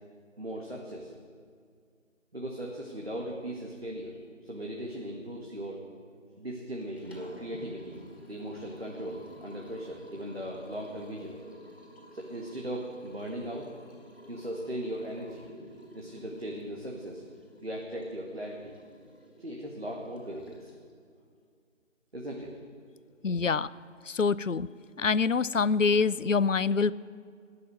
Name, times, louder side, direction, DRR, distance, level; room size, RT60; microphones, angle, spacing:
voice 1, 0.4-1.1 2.3-4.2 4.4-5.8 6.4-8.0 8.3-11.4 12.1-13.7 14.0-15.5 15.9-17.2 17.6-18.7 19.4-20.7 22.1-22.5, right 1 dB, 50° right, -2 dB, 2.0 m, -38 dB
Liquid, 6.8-20.9, equal, 50° left, 4.6 m, -52 dB
voice 2, 23.2-23.7 24.1-24.7 25.0-26.9, left 5 dB, 70° left, 18 dB, 0.6 m, -25 dB
20.5 x 6.9 x 9.3 m, 2.1 s
figure-of-eight pair, 175°, 40 cm